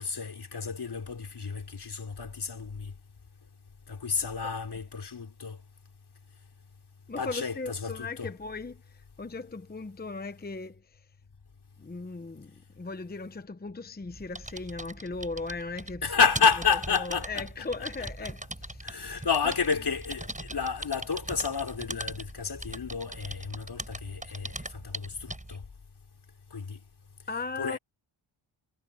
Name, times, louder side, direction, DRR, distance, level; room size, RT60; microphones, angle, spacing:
voice 1, 0.0-2.9 3.9-5.6 7.2-8.3 16.0-17.5 18.8-25.6 26.5-26.8 27.6-27.8, left 5 dB, 55° left, 4.5 m, -30 dB
voice 2, 7.1-8.8 9.2-10.8 11.8-16.1 17.0-18.8 27.3-27.8, left 3 dB, 20° left, 0.9 m, -37 dB
sound 1, 14.0-25.6, right 1 dB, 15° right, 5.6 m, -40 dB
wide cardioid pair, 95°, 48 cm